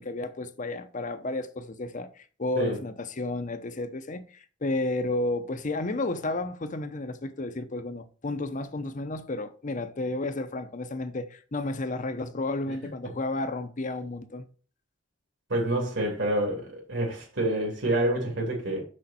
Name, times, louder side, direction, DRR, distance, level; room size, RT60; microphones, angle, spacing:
voice 1, 0.0-14.5, left 2 dB, 45° left, 0.8 m, -32 dB
voice 2, 15.5-18.8, right 1 dB, 80° right, 2.8 m, -27 dB
6.4 x 6.3 x 4.3 m
head